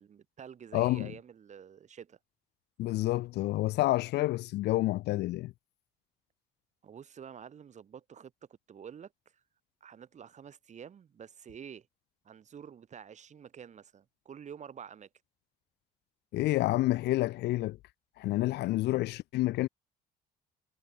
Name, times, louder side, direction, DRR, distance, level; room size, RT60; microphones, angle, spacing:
voice 1, 0.0-2.2 6.8-8.3 8.7-9.1 9.8-11.9 12.2-15.1, right 8 dB, 45° right, 6.8 m, -48 dB
voice 2, 0.7-1.1 2.8-5.5 16.3-17.8 18.2-19.7, left 17 dB, 80° left, 2.9 m, -29 dB
cardioid pair, 110°, 17 cm